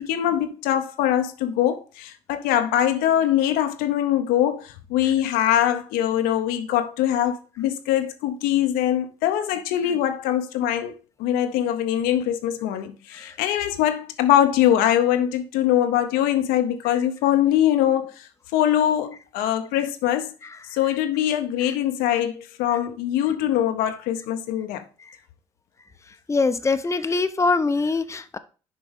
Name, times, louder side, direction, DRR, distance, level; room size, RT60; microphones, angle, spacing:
voice 1, 0.0-10.9 11.2-20.3 20.7-24.8, left 11 dB, 75° left, 0.7 m, -22 dB
voice 2, 26.3-28.4, left 3 dB, 20° left, 0.7 m, -23 dB
7.3 x 4.8 x 3.5 m
hypercardioid pair, 50°, 16 cm